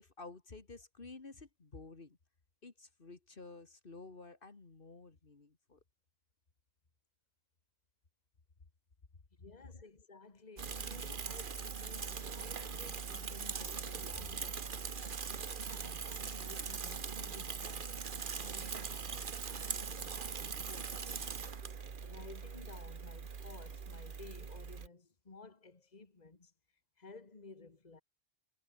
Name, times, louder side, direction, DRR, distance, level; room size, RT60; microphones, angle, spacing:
voice 1, 0.0-2.2 2.6-5.8, left 3 dB, 60° left, 2.2 m, -52 dB
voice 2, 9.4-21.4 22.0-26.5 27.0-28.0, left 3 dB, 40° left, 2.0 m, -55 dB
Bicycle / Mechanisms, 10.6-24.9, right 5 dB, 55° right, 1.3 m, -41 dB
omnidirectional pair, 1.0 m